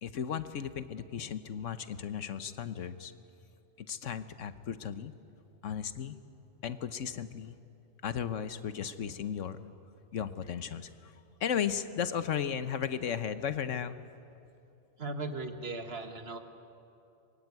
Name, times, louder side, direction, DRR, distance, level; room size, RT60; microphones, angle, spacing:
voice 1, 0.0-3.1 3.8-5.1 5.6-6.2 6.6-7.6 8.0-9.6 10.1-14.0, left 8 dB, 75° left, 12 dB, 1.2 m, -35 dB
voice 2, 15.0-16.4, right 3 dB, 50° right, 7 dB, 1.7 m, -37 dB
24.5 x 21.0 x 9.6 m, 2.7 s
omnidirectional pair, 1.3 m